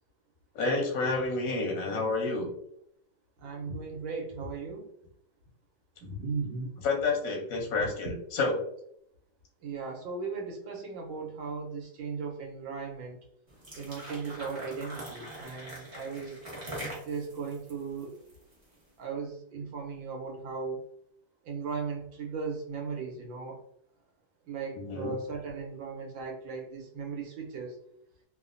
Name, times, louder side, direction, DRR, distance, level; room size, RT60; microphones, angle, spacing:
voice 1, 0.5-2.5 6.8-8.6 24.8-25.1, left 3 dB, 65° left, 0 dB, 0.9 m, -29 dB
voice 2, 3.4-4.9 6.0-6.7 7.8-7.9 9.6-13.2 13.7-16.4 17.1-18.1 19.0-20.8 21.4-23.6 24.5-27.7, right 4 dB, 85° right, 0 dB, 1.4 m, -37 dB
sound 1, 13.5-18.7, right 1 dB, 45° right, 0.4 m, -43 dB
3.3 x 2.1 x 2.4 m, 0.70 s
omnidirectional pair, 2.1 m